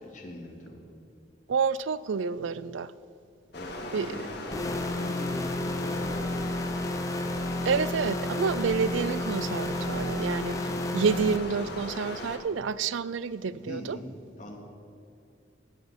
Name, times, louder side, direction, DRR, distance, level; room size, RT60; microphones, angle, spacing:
voice 1, 0.0-0.8 3.5-6.9 10.6-10.8 13.6-14.6, left 1 dB, 40° left, -1 dB, 2.4 m, -42 dB
voice 2, 1.5-2.9 3.9-4.2 7.6-10.6 10.9-14.0, right 5 dB, 75° right, 17 dB, 0.4 m, -29 dB
Stream, 3.5-12.4, left 2 dB, 60° left, 1.7 m, -39 dB
sound 1, 4.5-11.4, left 1 dB, 15° left, 0.7 m, -31 dB
16.5 x 11.0 x 5.2 m, 2.5 s
head